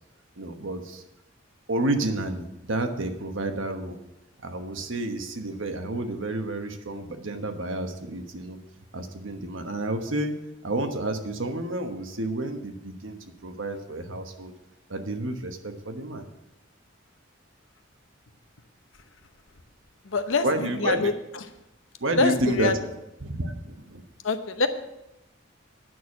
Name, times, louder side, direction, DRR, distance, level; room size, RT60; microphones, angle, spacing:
voice 1, 0.4-1.0 1.7-4.0 4.4-8.6 8.9-10.4 10.6-14.5 14.9-16.3 20.4-21.1 22.0-22.9 23.2-24.0, right 2 dB, 90° right, 6 dB, 1.2 m, -30 dB
voice 2, 20.0-21.1 22.2-22.8 24.2-24.7, left 3 dB, 85° left, 9 dB, 0.9 m, -25 dB
9.3 x 6.4 x 7.1 m, 0.92 s
head